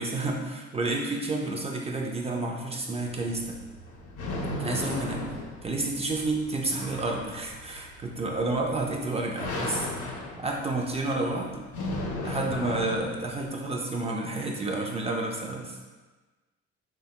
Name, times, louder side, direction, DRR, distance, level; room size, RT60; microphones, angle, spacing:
voice 1, 0.0-3.6 4.6-5.2 5.6-9.9 10.4-11.7 12.2-15.8, right 2 dB, 20° right, 0 dB, 0.4 m, -30 dB
sound 1, 3.0-13.5, left 2 dB, 65° left, 0.7 m, -36 dB
3.3 x 2.1 x 2.8 m, 1.2 s
hypercardioid pair, 65°, 33 cm